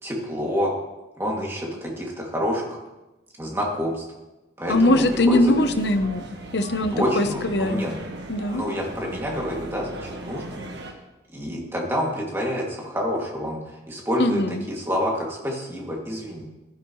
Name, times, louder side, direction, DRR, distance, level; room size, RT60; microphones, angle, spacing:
voice 1, 0.0-0.7 1.2-2.8 3.4-4.0 4.6-5.4 6.9-8.0 8.5-10.6 11.3-16.5, equal, 15° right, -2 dB, 2.4 m, -28 dB
voice 2, 4.7-6.2 6.5-7.9 8.3-8.6 14.2-14.6, left 1 dB, 70° left, 8 dB, 0.9 m, -21 dB
sound 1, 4.7-10.9, right 1 dB, 70° right, 1.5 m, -38 dB
16.0 x 12.0 x 3.1 m, 1.0 s
head